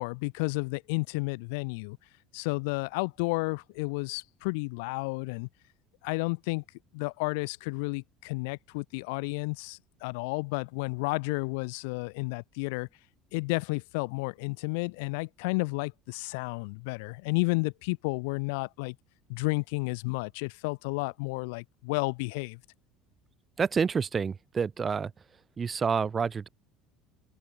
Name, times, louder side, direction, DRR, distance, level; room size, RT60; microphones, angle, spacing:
voice 1, 0.0-2.0 2.3-5.5 6.0-6.6 6.9-12.9 13.3-19.0 19.3-22.6, left 29 dB, 65° left, 3.6 m, -32 dB
voice 2, 23.6-25.1 25.6-26.5, right 6 dB, 30° right, 5.7 m, -28 dB
open air
figure-of-eight pair, 65°, 0 cm